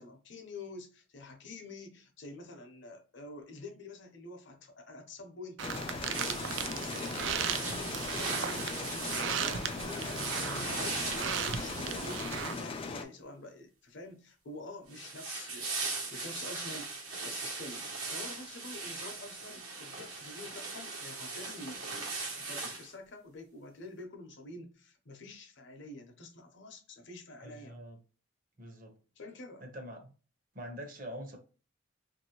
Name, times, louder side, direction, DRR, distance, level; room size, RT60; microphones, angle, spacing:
voice 1, 0.0-8.8 9.3-15.7 16.1-16.9 17.2-21.9 22.3-27.8 29.2-29.7, left 2 dB, 60° left, 0.7 m, -47 dB
sound 1, 5.6-13.0, left 3 dB, 25° left, 0.3 m, -39 dB
sound 2, 5.6-12.5, right 7 dB, 60° right, 0.3 m, -37 dB
sound 3, 6.1-12.9 14.9-22.9, right 3 dB, 85° right, 1.1 m, -39 dB
voice 2, 9.9-10.3 27.4-28.0 28.6-29.0 29.6-30.1 30.5-31.4, equal, 45° right, 0.8 m, -45 dB
3.0 x 2.7 x 2.9 m
head